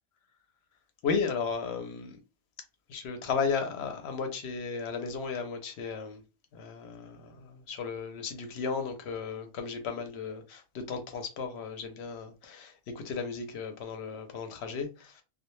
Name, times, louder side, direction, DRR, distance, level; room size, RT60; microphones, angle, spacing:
voice 1, 1.0-2.2 2.9-6.2 6.5-15.2, left 5 dB, 65° left, 0.7 m, -35 dB
2.1 x 2.1 x 3.0 m
omnidirectional pair, 1.3 m